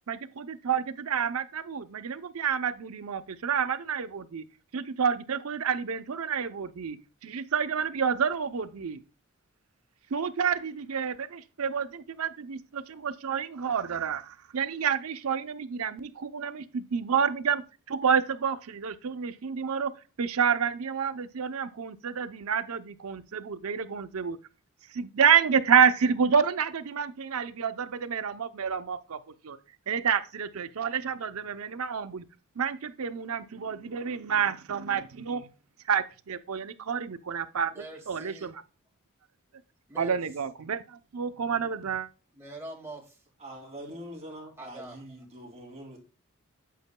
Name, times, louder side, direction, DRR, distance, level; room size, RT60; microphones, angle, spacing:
voice 1, 0.1-4.4 4.7-7.0 7.2-9.0 10.1-17.6 17.9-19.9 20.2-24.4 24.9-29.2 29.4-29.6 29.9-32.2 32.6-35.5 35.9-37.7 38.1-38.5 40.0-42.1, right 7 dB, 75° right, 0.6 m, -29 dB
voice 2, 37.7-38.6 39.9-40.2 42.3-43.2 44.6-45.0, right 2 dB, 10° right, 1.9 m, -43 dB
voice 3, 43.4-46.0, equal, 30° right, 2.7 m, -43 dB
8.3 x 8.3 x 2.2 m
head